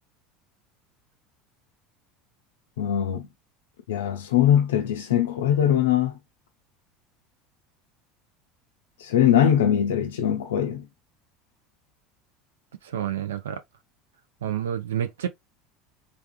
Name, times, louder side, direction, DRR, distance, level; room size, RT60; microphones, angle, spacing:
voice 1, 2.8-3.3 3.9-6.2 9.0-10.9, left 10 dB, 80° left, 0.4 m, -21 dB
voice 2, 12.8-13.6 14.4-15.3, right 10 dB, 80° right, 0.4 m, -29 dB
3.4 x 2.3 x 2.2 m
hypercardioid pair, 75°, 0 cm